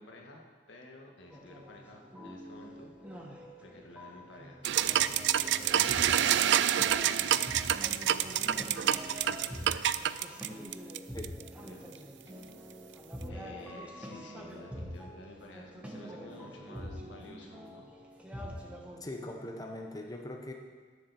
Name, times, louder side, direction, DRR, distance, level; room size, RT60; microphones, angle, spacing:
voice 1, 0.0-3.2 3.6-5.0 5.4-10.1 11.7-11.9 12.3-13.0 13.3-17.9, left 2 dB, 85° left, 0 dB, 1.8 m, -52 dB
sound 1, 1.3-19.0, equal, 5° right, 1.4 m, -45 dB
sound 2, 4.6-11.5, right 10 dB, 70° right, 0.4 m, -27 dB
voice 2, 19.0-20.5, left 1 dB, 20° left, 2 dB, 0.9 m, -41 dB
11.5 x 7.1 x 6.9 m, 1.5 s
head